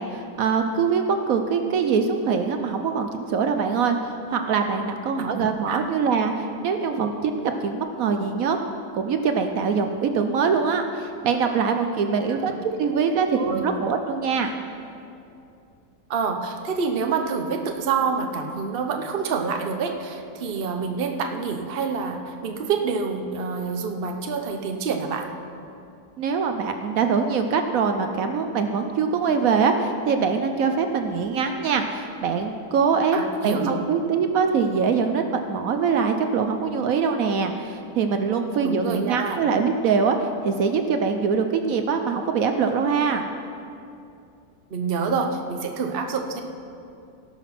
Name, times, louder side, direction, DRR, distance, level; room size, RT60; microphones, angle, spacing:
voice 1, 0.0-8.6 8.9-14.5 26.2-33.2 33.4-43.2, right 5 dB, 70° right, 6 dB, 1.1 m, -23 dB
voice 2, 5.2-5.8 12.3-12.5 13.4-13.6 16.1-25.3 33.1-33.8 38.6-39.4 44.7-46.4, right 5 dB, 45° right, 4 dB, 0.9 m, -27 dB
17.5 x 6.0 x 5.8 m, 2.6 s
omnidirectional pair, 1.6 m